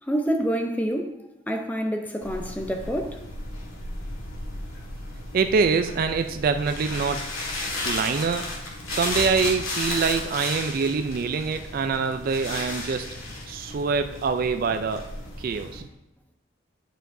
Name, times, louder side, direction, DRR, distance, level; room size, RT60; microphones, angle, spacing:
voice 1, 0.0-1.2 1.5-3.2, equal, 10° left, 4 dB, 0.5 m, -27 dB
sound 1, 2.2-15.8, left 2 dB, 85° left, 1.6 m, -34 dB
voice 2, 5.3-7.3 7.8-8.5 8.9-13.1 13.5-15.0 15.4-15.9, right 5 dB, 45° right, 8 dB, 0.3 m, -25 dB
11.0 x 4.7 x 2.6 m, 0.90 s
head